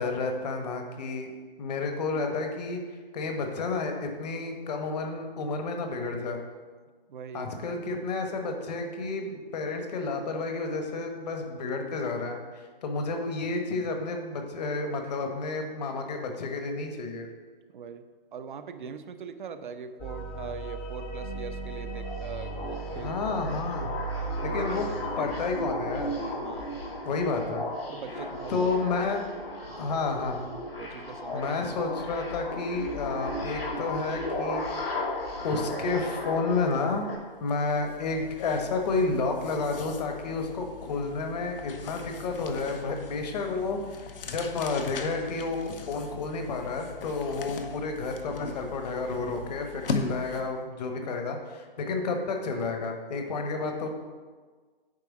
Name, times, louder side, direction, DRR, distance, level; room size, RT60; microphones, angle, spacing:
voice 1, 0.0-1.3 1.6-2.8 3.1-6.4 7.3-12.4 12.8-17.3 22.9-23.9 24.4-24.8 25.2-26.1 27.0-27.6 28.5-29.2 29.8-30.4 31.3-35.2 35.4-37.1 37.4-53.9, left 3 dB, 45° left, 4 dB, 1.2 m, -31 dB
voice 2, 7.1-7.5 17.7-23.1 23.8-23.9 24.4-24.8 25.2-25.4 26.4-26.8 27.9-28.7 29.7-30.0 30.8-31.5, right 6 dB, 55° right, 10 dB, 0.7 m, -42 dB
sound 1, 20.0-25.2, right 3 dB, 15° left, 0.4 m, -36 dB
sound 2, 21.9-37.2, left 1 dB, 85° left, 2.1 m, -35 dB
sound 3, 36.7-36.9 37.2-50.6, left 4 dB, 70° left, 0.9 m, -40 dB
9.1 x 3.4 x 6.1 m, 1.5 s
hypercardioid pair, 145°, 29 cm